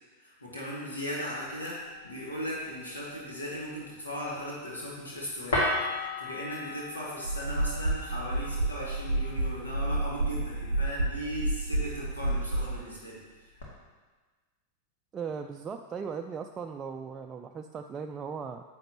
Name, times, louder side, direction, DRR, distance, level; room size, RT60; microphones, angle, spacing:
voice 1, 0.2-13.5, equal, 75° left, -4 dB, 1.9 m, -38 dB
sound 1, 1.4-13.6, left 2 dB, 60° left, 2.1 m, -39 dB
sound 2, 7.2-12.8, right 2 dB, 85° right, 0.7 m, -30 dB
voice 2, 15.1-18.6, right 6 dB, 20° right, 3 dB, 0.4 m, -38 dB
10.0 x 7.9 x 2.9 m, 1.3 s
figure-of-eight pair, 90°, 0 cm